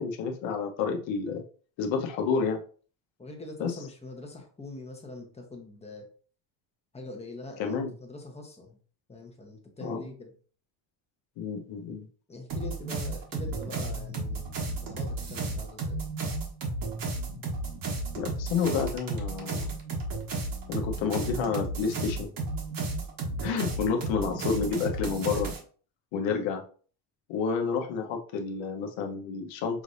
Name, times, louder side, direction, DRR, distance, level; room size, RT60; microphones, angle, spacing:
voice 1, 0.0-1.4 1.8-2.6 3.6-3.7 7.6-7.9 9.8-10.1 11.4-12.1 18.2-19.7 20.7-22.3 23.4-25.5 26.1-26.6 27.3-29.8, left 5 dB, 70° left, 3 dB, 1.1 m, -30 dB
voice 2, 3.2-6.1 6.9-8.8 9.1-10.3 12.3-14.5 14.8-16.0 26.3-26.5, left 2 dB, 15° left, 2 dB, 1.0 m, -43 dB
sound 1, 12.5-25.6, right 2 dB, 45° right, 1.2 m, -33 dB
6.0 x 3.4 x 2.6 m, 0.41 s
cardioid pair, 140°, 48 cm